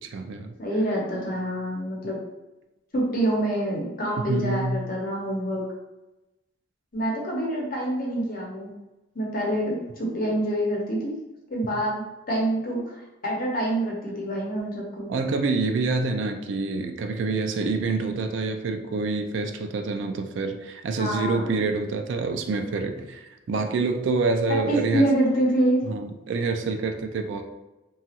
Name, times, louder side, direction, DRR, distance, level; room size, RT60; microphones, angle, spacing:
voice 1, 0.0-0.5 4.3-4.8 15.1-23.2 23.5-25.0 25.9-27.4, right 3 dB, 70° right, 6 dB, 0.3 m, -27 dB
voice 2, 0.6-2.2 2.9-5.6 6.9-8.7 9.1-11.1 11.5-15.1 20.9-21.5 24.7-25.8, right 1 dB, 50° left, -2 dB, 0.8 m, -26 dB
2.9 x 2.3 x 2.8 m, 1.0 s
head